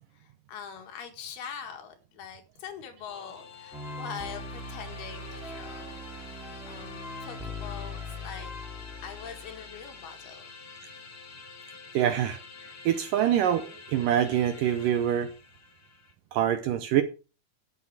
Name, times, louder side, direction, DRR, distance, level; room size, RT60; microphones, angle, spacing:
voice 1, 0.1-6.0 6.7-8.5 9.0-10.6, left 7 dB, 80° left, 3.8 m, -43 dB
sound 1, 3.0-16.1, left 5 dB, 50° left, 1.7 m, -48 dB
sound 2, 3.7-10.1, left 2 dB, ahead, 2.4 m, -40 dB
voice 2, 11.9-12.4 12.9-15.3 16.3-17.0, right 10 dB, 80° right, 2.0 m, -25 dB
11.0 x 8.2 x 4.8 m
omnidirectional pair, 4.5 m